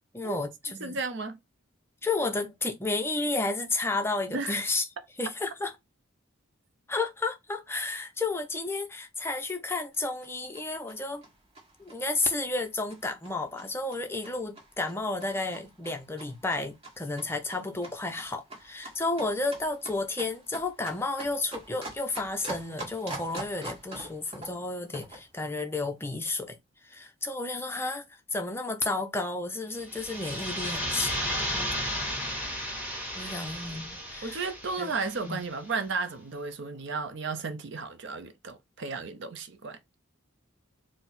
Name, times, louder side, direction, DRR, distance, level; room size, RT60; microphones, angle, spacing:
voice 1, 0.1-1.0 2.0-4.8 5.2-5.7 6.9-11.2 11.8-26.6 26.8-31.7 33.2-34.4 34.8-34.9 35.2-35.4, left 3 dB, 10° left, 0.5 m, -32 dB
voice 2, 0.8-1.4 4.3-4.6 34.2-39.8, right 4 dB, 55° right, 0.6 m, -34 dB
sound 1, 9.9-25.3, right 2 dB, 30° right, 1.4 m, -45 dB
sound 2, 29.8-35.4, equal, 10° right, 1.5 m, -34 dB
4.5 x 2.1 x 4.0 m
head